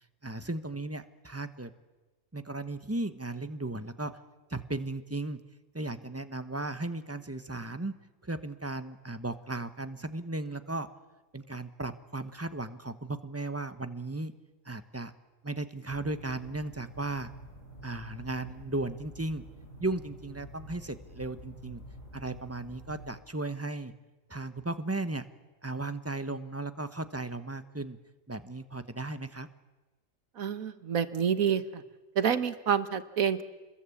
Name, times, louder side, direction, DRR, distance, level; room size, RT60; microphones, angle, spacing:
voice 1, 0.2-1.7 2.3-4.1 4.5-5.4 5.7-7.9 8.2-10.9 11.3-14.3 14.6-15.1 15.4-17.3 17.8-19.4 19.8-21.8 22.1-23.9 24.3-25.2 25.6-28.0 28.3-29.5, right 2 dB, 10° right, 11 dB, 1.0 m, -36 dB
sound 1, 15.9-23.2, right 1 dB, 60° left, 7.6 m, -48 dB
voice 2, 30.4-31.8 32.1-33.4, right 8 dB, 80° right, 11 dB, 1.7 m, -28 dB
28.0 x 21.5 x 8.5 m, 1.2 s
omnidirectional pair, 1.4 m